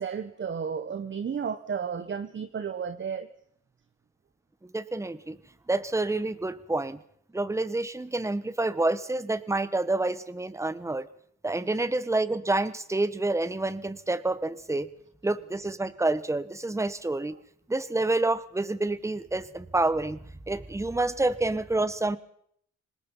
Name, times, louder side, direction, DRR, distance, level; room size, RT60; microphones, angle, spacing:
voice 1, 0.0-3.3, right 6 dB, 40° right, 1.4 m, -33 dB
voice 2, 4.7-5.4 5.7-7.0 7.3-11.1 11.4-14.9 15.2-17.3 17.7-20.2 20.5-22.2, right 2 dB, 10° right, 1.4 m, -28 dB
26.0 x 20.5 x 5.7 m
cardioid pair, 90°, 30 cm